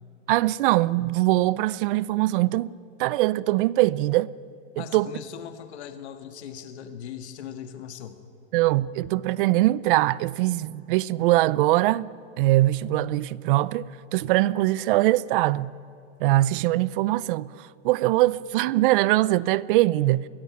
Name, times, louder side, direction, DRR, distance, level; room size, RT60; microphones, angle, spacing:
voice 1, 0.3-4.3 4.8-5.1 8.5-12.1 12.4-15.7 16.2-20.3, right 17 dB, 50° right, 0.6 m, -22 dB
voice 2, 4.8-8.2, left 9 dB, 70° left, 1.8 m, -39 dB
22.5 x 17.0 x 9.7 m
supercardioid pair, 145°, 34 cm